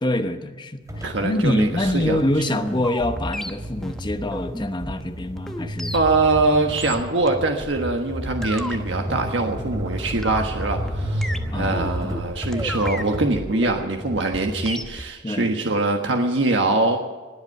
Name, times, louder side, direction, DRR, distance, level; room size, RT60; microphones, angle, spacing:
voice 1, 0.0-6.0 11.5-11.8 15.2-15.5, left 1 dB, 25° left, 7 dB, 1.0 m, -25 dB
sound 1, 0.9-13.3, equal, 20° right, 2.8 m, -32 dB
voice 2, 1.0-2.2 2.5-2.6 5.9-17.0, right 2 dB, 85° right, 3 dB, 1.4 m, -23 dB
sound 2, 2.2-15.0, equal, 5° left, 0.9 m, -33 dB
20.5 x 8.2 x 7.6 m, 1.3 s
head